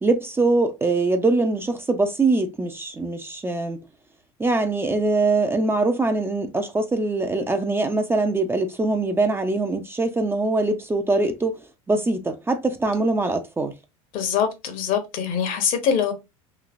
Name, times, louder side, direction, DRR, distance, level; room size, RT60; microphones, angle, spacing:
voice 1, 0.0-3.8 4.4-13.7, right 2 dB, 15° right, 0.5 m, -23 dB
voice 2, 14.1-16.1, left 7 dB, 55° left, 1.0 m, -23 dB
3.1 x 2.8 x 2.4 m
hypercardioid pair, 80°, 17 cm